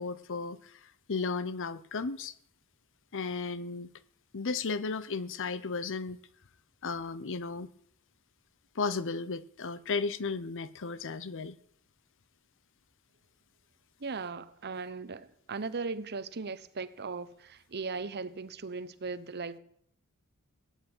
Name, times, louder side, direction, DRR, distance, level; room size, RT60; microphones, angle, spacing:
voice 1, 0.0-2.3 3.1-3.9 4.3-6.2 6.8-7.7 8.7-11.6, left 4 dB, 60° left, 0.8 m, -34 dB
voice 2, 14.0-19.6, right 4 dB, 50° right, 0.9 m, -38 dB
17.5 x 9.0 x 8.8 m
head